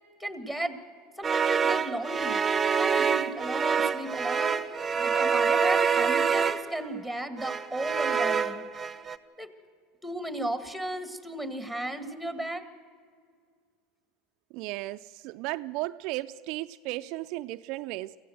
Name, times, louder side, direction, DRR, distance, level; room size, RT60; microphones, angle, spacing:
voice 1, 0.2-0.8 1.2-2.4 2.7-8.6 9.4-9.5 10.0-12.7, right 1 dB, 5° left, 1.8 m, -35 dB
sound 1, 1.2-6.9 7.4-9.2, right 6 dB, 20° right, 0.8 m, -26 dB
voice 2, 14.5-18.2, right 18 dB, 60° right, 0.4 m, -35 dB
24.0 x 15.5 x 7.8 m
supercardioid pair, 115°, 0 cm